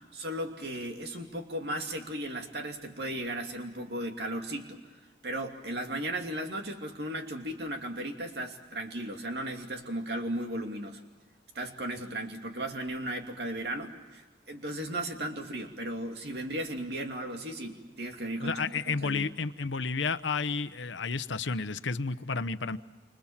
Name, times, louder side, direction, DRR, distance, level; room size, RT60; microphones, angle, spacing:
voice 1, 0.1-4.8 5.2-11.0 11.5-19.3, right 1 dB, 60° right, 4 dB, 2.8 m, -36 dB
voice 2, 18.4-22.8, left 4 dB, 90° left, 13 dB, 0.9 m, -31 dB
28.5 x 26.0 x 7.4 m, 1.2 s
head